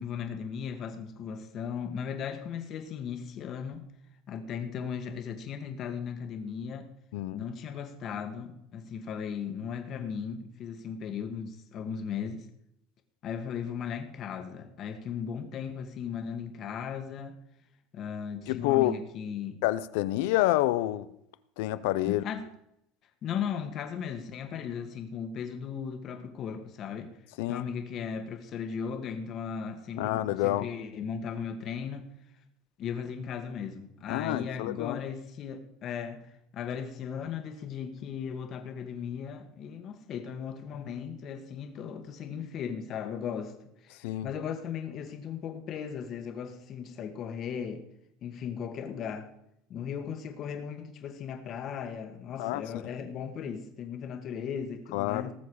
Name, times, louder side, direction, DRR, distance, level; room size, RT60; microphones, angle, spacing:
voice 1, 0.0-3.8 4.3-6.9 7.3-12.5 13.2-17.3 17.9-19.6 22.0-22.4 23.2-27.1 27.5-32.1 32.8-43.5 43.8-47.9 48.2-49.3 49.7-55.3, left 7 dB, 40° left, 1.7 m, -37 dB
voice 2, 7.1-7.4 18.5-18.9 19.6-21.1 21.6-22.2 27.4-27.7 30.0-30.7 34.1-35.0 44.0-44.3 52.4-52.6 54.9-55.3, left 16 dB, 80° left, 0.6 m, -28 dB
19.0 x 7.1 x 4.9 m
cardioid pair, 140°, 0 cm